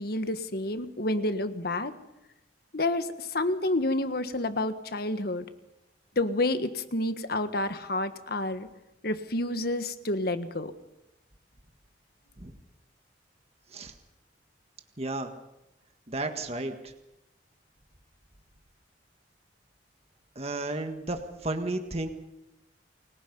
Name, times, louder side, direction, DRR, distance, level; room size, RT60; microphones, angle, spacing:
voice 1, 0.0-1.9 2.7-5.4 6.1-8.7 9.0-10.7, left 2 dB, 55° left, 10 dB, 1.5 m, -29 dB
voice 2, 15.0-15.3 16.1-16.9 20.3-22.1, right 2 dB, 35° right, 6 dB, 1.7 m, -33 dB
29.5 x 21.5 x 5.5 m, 0.90 s
head